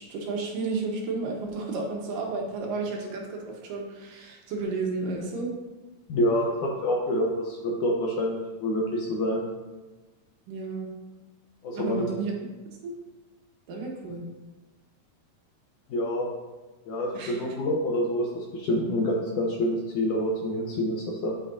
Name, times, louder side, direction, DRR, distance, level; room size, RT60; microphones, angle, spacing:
voice 1, 0.0-5.5 10.5-10.9 11.7-12.4 12.8-12.9 13.7-14.2 17.1-17.4, right 3 dB, 70° right, 0 dB, 2.6 m, -32 dB
voice 2, 6.1-9.4 11.6-12.1 15.9-16.3 16.9-21.3, left 1 dB, 70° left, -1 dB, 2.0 m, -27 dB
8.3 x 8.2 x 2.7 m, 1.2 s
omnidirectional pair, 4.4 m